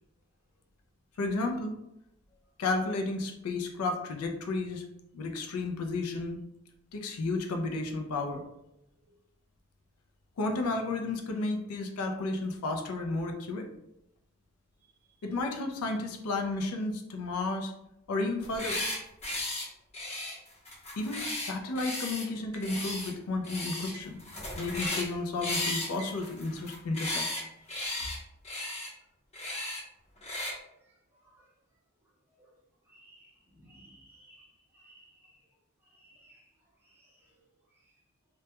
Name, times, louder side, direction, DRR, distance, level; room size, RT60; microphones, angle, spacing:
voice 1, 1.2-1.8 2.6-4.8 5.1-6.4 6.9-8.4 10.4-13.7 15.2-17.7 18.1-18.8 21.0-24.2 24.6-27.2, left 2 dB, 85° left, 4 dB, 0.4 m, -32 dB
sound 1, 18.4-19.0 19.2-19.6 19.9-22.2 22.6-23.1 23.4-23.9 24.2-25.1 25.4-27.4 27.7-28.2 28.4-28.9 29.3-29.8 30.2-30.5, left 2 dB, 30° left, 0.7 m, -35 dB
sound 2, 21.8-23.1 23.9-25.3 25.7-26.6 27.4-28.2, right 3 dB, 80° right, 0.7 m, -52 dB
voice 2, 32.9-34.5 34.7-35.1 36.0-36.4 37.0-37.1, right 1 dB, 10° right, -5 dB, 0.6 m, -58 dB
2.2 x 2.2 x 2.8 m, 0.85 s
head